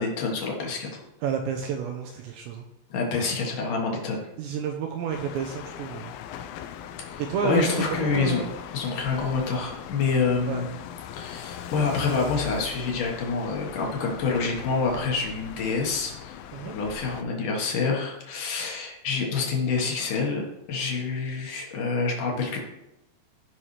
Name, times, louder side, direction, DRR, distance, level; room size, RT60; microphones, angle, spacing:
voice 1, 0.0-1.1 2.9-4.2 7.1-8.4 8.7-10.7 11.2-16.4 16.7-20.4 20.7-22.6, left 4 dB, 65° left, -1 dB, 2.1 m, -27 dB
voice 2, 1.2-2.6 4.4-6.1 7.2-8.5 10.5-10.6 16.5-16.7, right 7 dB, 85° right, 2 dB, 2.6 m, -30 dB
sound 1, 5.1-17.2, left 9 dB, 85° left, 2.9 m, -40 dB
16.0 x 5.7 x 3.2 m, 0.90 s
omnidirectional pair, 5.7 m